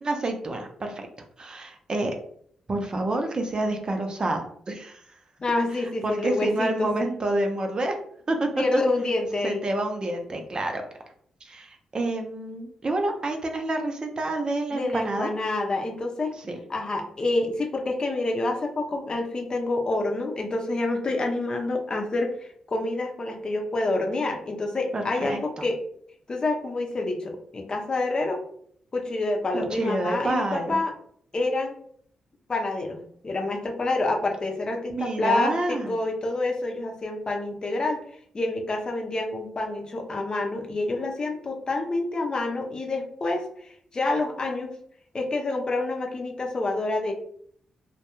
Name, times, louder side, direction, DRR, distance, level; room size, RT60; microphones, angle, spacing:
voice 1, 0.0-1.1 1.4-2.1 2.7-5.0 6.0-8.0 8.3-8.8 9.4-10.8 11.4-15.3 16.5-16.6 24.9-25.6 29.5-30.8 34.9-35.9, right 2 dB, 40° right, 4 dB, 0.6 m, -28 dB
voice 2, 5.4-6.9 8.6-9.6 14.7-16.3 16.7-25.8 26.3-28.4 28.9-30.9 31.3-31.8 32.5-38.0 38.3-44.7 45.1-47.1, left 2 dB, 40° left, 2 dB, 0.7 m, -27 dB
2.3 x 2.2 x 2.9 m, 0.63 s
hypercardioid pair, 45°, 2 cm